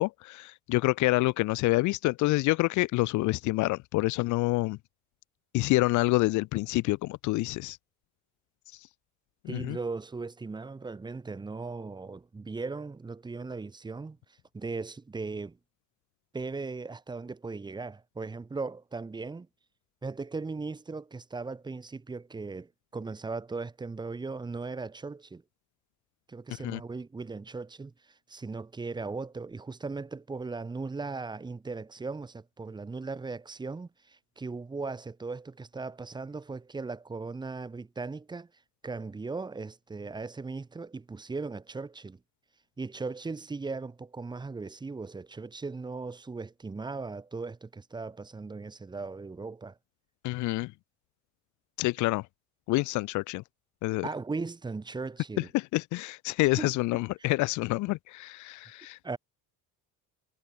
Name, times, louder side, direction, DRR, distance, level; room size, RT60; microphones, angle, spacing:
voice 1, 0.0-4.8 5.5-7.8 8.7-8.8 9.4-9.8 26.6-26.8 50.2-50.7 51.8-52.3 52.7-53.4 53.8-54.1 55.4-59.0, left 20 dB, 60° left, 1.1 m, -27 dB
voice 2, 9.4-14.2 14.5-15.6 16.3-19.5 20.0-25.4 26.3-38.5 38.8-42.2 42.8-49.8 54.0-55.5 56.6-56.7 59.0-59.2, right 4 dB, 10° right, 4.7 m, -38 dB
cardioid pair, 175°, 34 cm